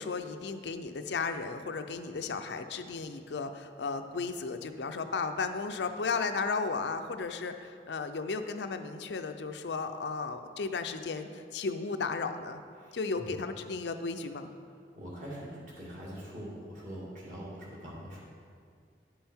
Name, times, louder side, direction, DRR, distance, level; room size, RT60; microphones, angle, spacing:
voice 1, 0.0-12.6 12.9-14.5, left 4 dB, 85° left, 8 dB, 0.5 m, -34 dB
voice 2, 12.8-13.4 14.9-18.2, equal, 45° right, -6 dB, 2.2 m, -43 dB
10.5 x 5.6 x 4.4 m, 2.2 s
head